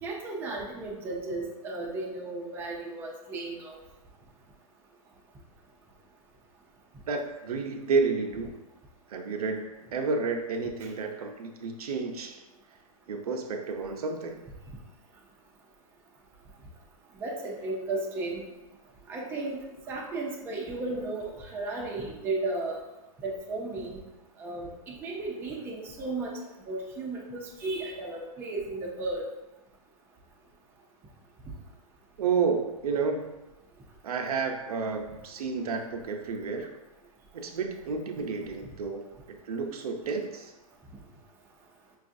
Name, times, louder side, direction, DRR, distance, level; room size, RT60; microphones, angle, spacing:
voice 1, 0.0-3.8 17.2-18.4 19.1-19.6 19.9-22.8 23.2-24.0 24.4-26.4 26.7-29.3, right 2 dB, 10° right, -2 dB, 0.4 m, -34 dB
voice 2, 7.1-8.6 9.1-12.4 13.1-14.4 32.2-33.4 34.0-36.7 37.3-39.1 39.4-40.5, right 4 dB, 85° right, 4 dB, 0.6 m, -31 dB
5.3 x 2.3 x 2.5 m, 1.0 s
hypercardioid pair, 150°, 19 cm